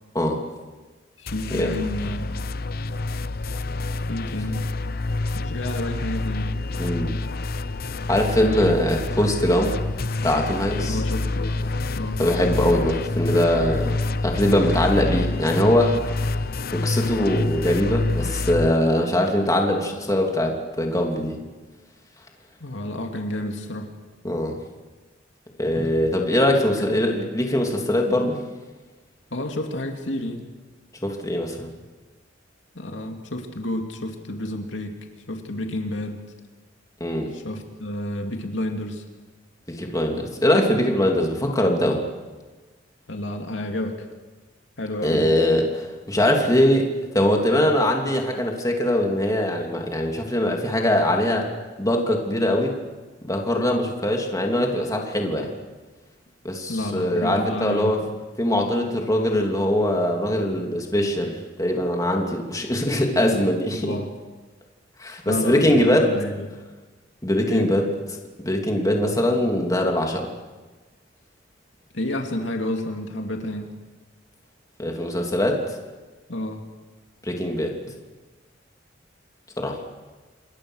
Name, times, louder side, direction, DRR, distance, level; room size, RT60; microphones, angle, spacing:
voice 1, 1.2-2.6 4.1-4.7 5.3-6.6 10.8-11.7 11.9-12.2 22.6-23.9 26.7-27.0 29.3-30.5 32.7-35.0 35.3-36.2 37.3-39.0 43.1-44.1 44.8-45.4 56.7-58.1 63.7-64.1 65.3-66.6 67.5-67.8 71.9-73.7 76.3-76.6, left 1 dB, 80° left, 3 dB, 2.6 m, -30 dB
sound 1, 1.3-18.7, left 2 dB, 55° left, 0.8 m, -27 dB
voice 2, 6.8-7.1 8.1-9.8 10.2-11.0 12.2-14.0 14.2-16.0 16.7-21.4 24.2-24.6 25.6-28.4 31.0-31.7 37.0-37.3 39.7-42.0 45.0-46.9 47.1-51.5 51.8-52.8 53.2-55.5 56.4-58.0 58.4-63.9 65.0-66.1 67.2-67.9 68.4-70.3 74.8-75.6 77.2-77.7 79.6-79.8, left 1 dB, 20° left, 1 dB, 3.0 m, -22 dB
27.5 x 22.0 x 6.5 m, 1.3 s
head